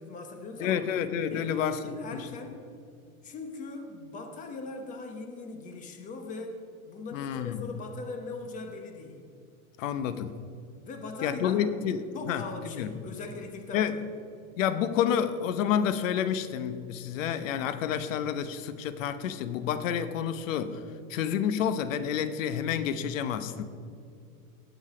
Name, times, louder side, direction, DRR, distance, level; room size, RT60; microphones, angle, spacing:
voice 1, 0.0-0.8 1.3-2.7 3.2-6.6 6.9-9.2 10.9-11.6 12.1-13.9, left 3 dB, 15° left, 5 dB, 1.0 m, -40 dB
voice 2, 0.6-1.8 7.1-7.6 9.8-10.4 11.2-12.4 12.7-12.9 13.7-13.9 14.6-20.8 21.1-23.6, left 8 dB, 60° left, 12 dB, 1.0 m, -29 dB
18.0 x 6.4 x 4.9 m, 2.5 s
supercardioid pair, 160°, 43 cm